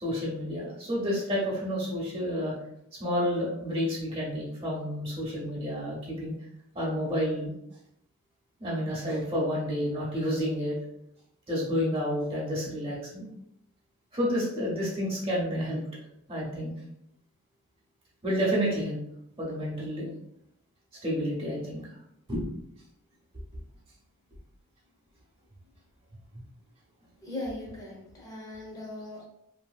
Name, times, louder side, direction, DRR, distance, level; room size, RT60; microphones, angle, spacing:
voice 1, 0.0-2.5 3.0-6.3 6.7-7.5 8.6-10.7 11.5-13.3 14.1-15.8 16.3-16.7 18.2-19.0 19.4-20.1 21.0-21.8 22.3-22.5, equal, 30° right, -5 dB, 0.9 m, -30 dB
voice 2, 27.2-29.2, left 1 dB, 20° left, -4 dB, 0.8 m, -39 dB
2.8 x 2.7 x 2.4 m, 0.77 s
head